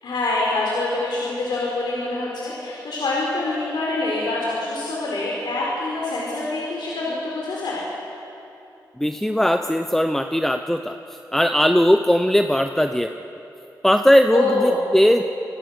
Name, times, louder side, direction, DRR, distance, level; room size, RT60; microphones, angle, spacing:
voice 1, 0.0-7.8 14.3-14.9, left 2 dB, 80° left, -4 dB, 4.6 m, -25 dB
voice 2, 9.0-11.0 11.3-13.1 13.8-15.2, equal, 5° left, 6 dB, 0.9 m, -18 dB
28.0 x 22.5 x 6.6 m, 2.9 s
cardioid pair, 65°, 8 cm